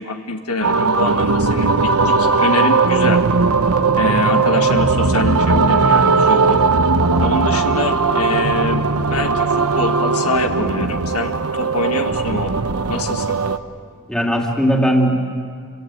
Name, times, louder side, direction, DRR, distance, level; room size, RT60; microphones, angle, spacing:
voice 1, 0.0-3.2 3.9-6.6 7.2-8.8 9.1-12.5 12.9-13.3, left 2 dB, 80° left, 5 dB, 1.7 m, -24 dB
sound 1, 0.6-13.6, right 4 dB, 80° right, 1.0 m, -17 dB
voice 2, 4.0-4.4 14.1-15.2, equal, 5° left, -1 dB, 2.9 m, -18 dB
29.0 x 25.5 x 7.8 m, 2.1 s
head